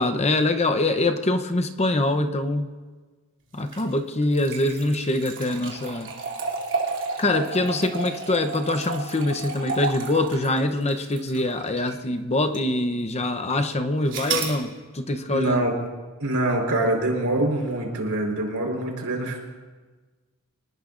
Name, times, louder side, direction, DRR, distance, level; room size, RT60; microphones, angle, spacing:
voice 1, 0.0-2.7 3.5-6.1 7.2-15.7, left 2 dB, 30° left, 8 dB, 0.8 m, -24 dB
sound 1, 3.6-12.0 12.5-12.6 14.1-14.6, right 4 dB, 60° right, 3.0 m, -32 dB
voice 2, 15.3-15.7 16.2-19.4, right 1 dB, 75° right, 1 dB, 4.5 m, -24 dB
26.0 x 19.5 x 2.6 m, 1.4 s
head